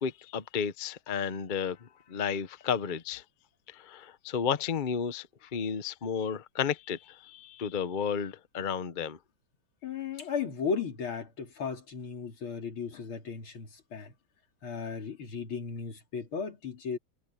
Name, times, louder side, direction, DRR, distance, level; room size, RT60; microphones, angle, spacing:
voice 1, 0.0-3.2 3.7-5.3 5.5-9.2, left 7 dB, 55° left, 0.5 m, -32 dB
voice 2, 9.8-14.1 14.6-17.0, left 5 dB, 75° left, 3.7 m, -35 dB
omnidirectional pair, 2.3 m